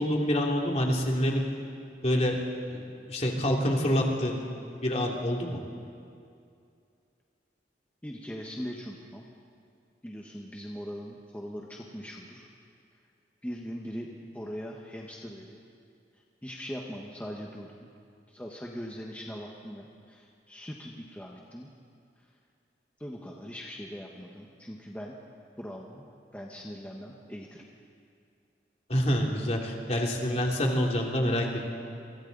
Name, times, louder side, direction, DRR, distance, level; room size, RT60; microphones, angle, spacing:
voice 1, 0.0-1.4 2.0-2.4 2.7-2.8 3.1-4.4 4.8-5.6 28.9-31.7, equal, 35° left, 0 dB, 2.6 m, -27 dB
voice 2, 8.0-9.3 10.0-12.5 13.4-15.6 16.4-17.9 18.3-21.7 23.0-25.1 25.6-26.1 26.3-27.6, equal, 10° left, -2 dB, 1.3 m, -40 dB
28.0 x 24.0 x 4.0 m, 2.4 s
head